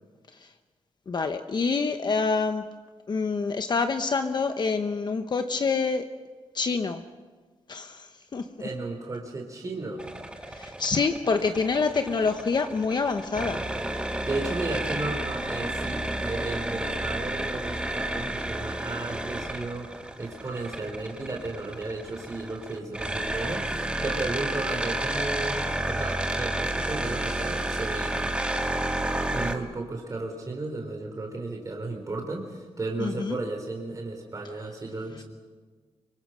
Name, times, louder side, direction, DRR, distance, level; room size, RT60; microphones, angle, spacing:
voice 1, 1.1-2.6 3.1-6.1 6.5-7.0 7.7-8.5 10.4-13.6 33.0-33.4, left 4 dB, 45° left, 7 dB, 1.0 m, -27 dB
voice 2, 8.6-10.1 14.3-19.9 20.2-28.3 29.3-35.2, right 2 dB, 35° right, 2 dB, 3.5 m, -34 dB
sound 1, 10.0-29.6, right 1 dB, 10° right, 1.7 m, -31 dB
25.5 x 24.0 x 6.4 m, 1.4 s
wide cardioid pair, 125°, 10 cm